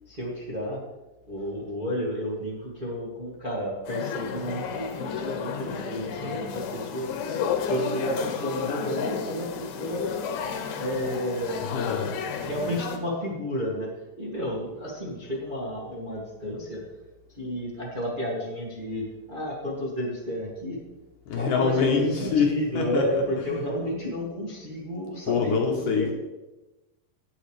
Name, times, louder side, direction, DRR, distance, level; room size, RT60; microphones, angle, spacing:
voice 1, 0.1-0.8 1.3-10.1 10.8-11.6 12.4-13.9 14.2-16.8 17.3-20.8 21.3-26.1, equal, 20° right, -5 dB, 1.7 m, -31 dB
sound 1, 3.8-13.0, left 7 dB, 85° left, 2.9 m, -32 dB
voice 2, 11.7-12.1 21.3-23.0 25.3-26.1, left 5 dB, 70° left, 1 dB, 2.4 m, -24 dB
17.5 x 7.1 x 3.3 m, 1.1 s
omnidirectional pair, 4.2 m